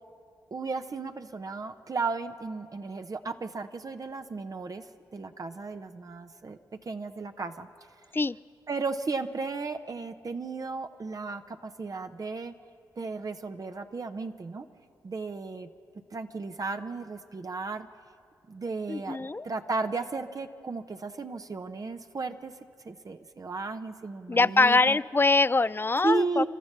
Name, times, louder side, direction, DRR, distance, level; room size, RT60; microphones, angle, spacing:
voice 1, 0.5-4.8 5.1-7.7 8.7-12.5 13.0-14.7 15.0-15.7 16.1-17.9 18.5-22.5 22.8-25.0 26.0-26.5, right 3 dB, 45° right, 7 dB, 0.9 m, -34 dB
voice 2, 18.9-19.5 24.3-26.4, left 3 dB, 25° left, 19 dB, 0.4 m, -23 dB
30.0 x 12.5 x 6.8 m, 2.3 s
supercardioid pair, 40°, 8 cm